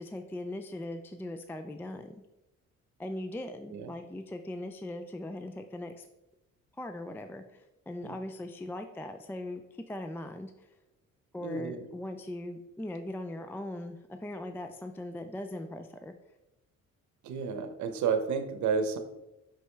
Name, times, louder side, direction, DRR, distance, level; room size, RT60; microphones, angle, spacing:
voice 1, 0.0-2.2 3.0-6.1 6.8-10.7 11.3-16.1, left 1 dB, 5° left, 7 dB, 0.3 m, -40 dB
voice 2, 11.4-11.9 17.2-19.0, right 6 dB, 70° right, 8 dB, 0.8 m, -31 dB
5.7 x 5.1 x 3.3 m, 0.94 s
cardioid pair, 90°, 30 cm